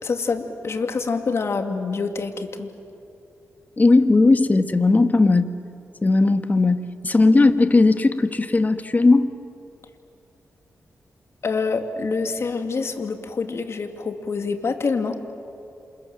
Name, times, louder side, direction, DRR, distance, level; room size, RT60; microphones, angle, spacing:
voice 1, 0.0-2.7 11.4-15.2, left 4 dB, 55° left, 6 dB, 2.5 m, -26 dB
voice 2, 3.8-5.5 6.0-9.3, left 3 dB, 30° left, 9 dB, 1.6 m, -17 dB
29.0 x 27.0 x 7.7 m, 2.7 s
cardioid pair, 65°, 5 cm